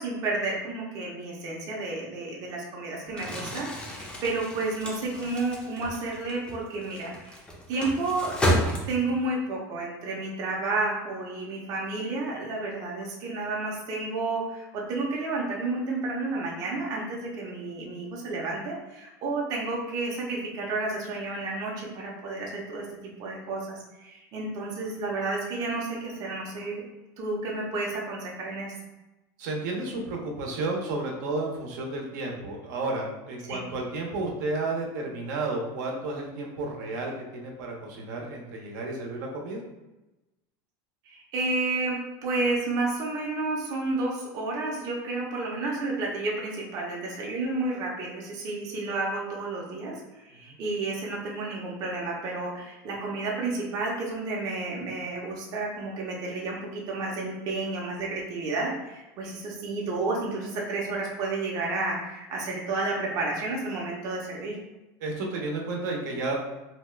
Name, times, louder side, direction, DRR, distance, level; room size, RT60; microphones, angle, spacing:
voice 1, 0.0-7.4 7.7-8.4 8.9-26.8 27.2-28.7 33.5-33.6 41.1-64.6, right 3 dB, 40° right, -3 dB, 0.6 m, -31 dB
Crumpling crinkling, 3.1-9.3, equal, 10° left, 0.5 m, -31 dB
voice 2, 29.4-39.6 50.4-50.5 65.0-66.3, right 2 dB, 80° right, 0 dB, 0.7 m, -32 dB
2.7 x 2.2 x 3.2 m, 1.0 s
supercardioid pair, 160°, 10 cm